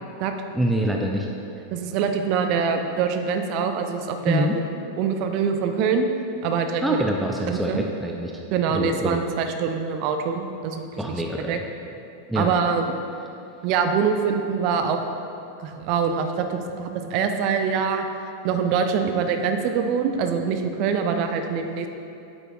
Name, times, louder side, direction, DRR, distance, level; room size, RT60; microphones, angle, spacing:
voice 1, 0.5-1.3 4.3-4.6 6.8-8.3 8.7-9.2 11.0-11.6 12.3-12.5, equal, 5° right, 0 dB, 0.5 m, -25 dB
voice 2, 1.7-4.6 5.0-6.1 6.4-7.0 7.5-7.8 8.5-10.9 11.5-11.6 12.3-12.9 13.6-15.0 15.6-18.1 18.4-21.9, right 6 dB, 45° right, 6 dB, 0.6 m, -24 dB
9.8 x 7.9 x 2.4 m, 2.7 s
figure-of-eight pair, 90°, 0 cm